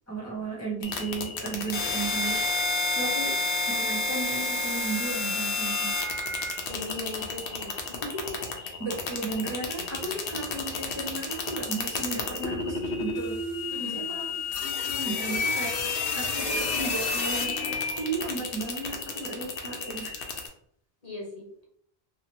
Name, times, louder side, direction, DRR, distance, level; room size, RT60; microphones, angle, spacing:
voice 1, 0.1-2.4 3.0-3.4 3.7-5.9 8.8-13.4 13.8-20.3, right 3 dB, 15° right, -5 dB, 0.6 m, -35 dB
sound 1, 0.8-20.5, left 3 dB, 65° left, 0.8 m, -30 dB
voice 2, 6.7-8.8 13.7-14.0 21.0-21.7, left 2 dB, 40° left, -3 dB, 1.0 m, -39 dB
2.8 x 2.8 x 2.9 m, 0.65 s
omnidirectional pair, 1.1 m